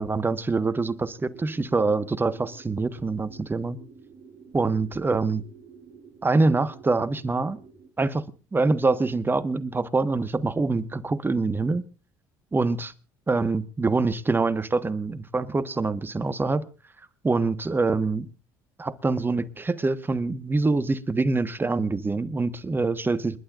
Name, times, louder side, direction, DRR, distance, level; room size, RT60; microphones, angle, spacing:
voice 1, 0.0-3.8 4.5-5.4 6.2-7.6 8.0-8.2 8.5-11.8 12.5-12.9 13.3-16.6 17.2-18.3 18.8-23.4, right 3 dB, 20° right, 14 dB, 1.4 m, -25 dB
sound 1, 1.2-7.9, right 6 dB, 45° right, 4.1 m, -49 dB
29.0 x 11.5 x 2.5 m, 0.32 s
hypercardioid pair, 65°, 10 cm